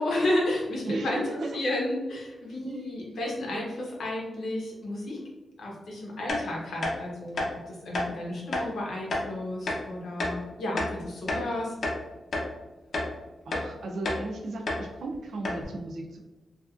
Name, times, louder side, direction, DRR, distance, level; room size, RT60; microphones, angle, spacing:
voice 1, 0.0-5.3 5.6-11.7, left 1 dB, 80° left, -2 dB, 0.9 m, -32 dB
voice 2, 0.8-1.6 2.6-2.9 13.5-16.2, right 2 dB, 75° right, 2 dB, 0.5 m, -35 dB
sound 1, 6.3-6.4 6.8-7.0 7.3-7.5 7.9-8.1 8.5-8.7 9.1-9.2 9.7-9.8 10.2-10.4 10.8-11.5 11.8-12.0 12.3-12.5 12.9-13.1 13.5-13.7 14.0-14.2 14.7-14.8 15.1-15.2 15.4-15.6, left 2 dB, 55° left, 0.7 m, -29 dB
3.2 x 2.5 x 2.4 m, 1.1 s
wide cardioid pair, 170°, 0 cm